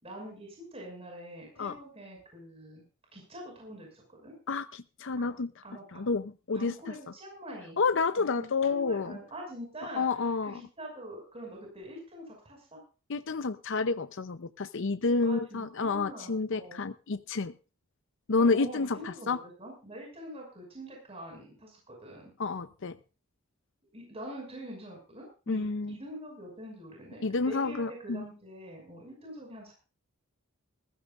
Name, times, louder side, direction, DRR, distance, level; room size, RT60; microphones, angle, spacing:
voice 1, 0.0-2.8 3.1-4.3 5.2-5.3 5.6-6.0 6.5-7.8 8.2-12.8 15.2-16.8 18.4-22.3 23.9-29.7, equal, 30° right, 0 dB, 6.0 m, -45 dB
voice 2, 4.5-5.5 5.9-6.7 7.8-9.2 10.0-10.6 13.1-17.5 18.3-19.4 22.4-23.0 25.5-25.9 27.2-28.2, left 4 dB, 65° left, 11 dB, 0.7 m, -29 dB
20.5 x 15.0 x 2.5 m, 0.33 s
head